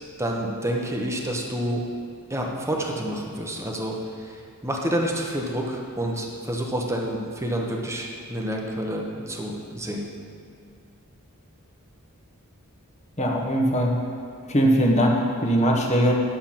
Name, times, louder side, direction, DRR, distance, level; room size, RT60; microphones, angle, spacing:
voice 1, 0.2-1.8 2.3-10.1, right 1 dB, 15° right, 0 dB, 1.1 m, -28 dB
voice 2, 13.2-14.1 14.5-16.1, equal, 30° left, -1 dB, 1.4 m, -21 dB
11.0 x 6.8 x 5.9 m, 2.4 s
head